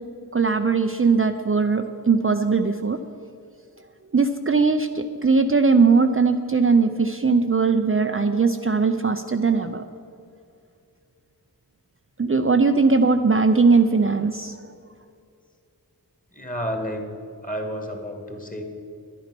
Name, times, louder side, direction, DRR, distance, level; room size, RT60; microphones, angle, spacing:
voice 1, 0.3-3.0 4.1-9.8 12.2-14.6, right 4 dB, 35° right, 6 dB, 0.5 m, -20 dB
voice 2, 16.3-17.1 17.4-18.6, equal, 20° left, 3 dB, 1.9 m, -31 dB
10.5 x 10.5 x 6.0 m, 2.4 s
wide cardioid pair, 50°, 38 cm